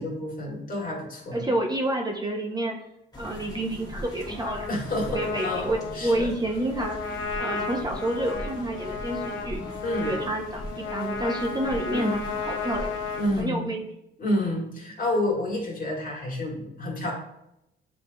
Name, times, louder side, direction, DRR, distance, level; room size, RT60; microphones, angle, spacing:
voice 1, 0.0-1.4 4.7-5.7 5.9-6.3 9.8-10.2 11.9-12.2 13.1-13.7 14.2-17.1, left 1 dB, 45° left, -3 dB, 1.6 m, -29 dB
voice 2, 1.3-2.8 3.2-4.7 5.1-9.6 10.0-12.9 13.4-13.9, right 1 dB, 20° right, 1 dB, 0.6 m, -29 dB
sound 1, 3.1-13.4, equal, 20° left, 1.3 m, -40 dB
Trumpet, 4.4-13.3, left 4 dB, 80° left, 0.6 m, -34 dB
7.4 x 2.6 x 2.2 m, 0.83 s
cardioid pair, 90°, 20 cm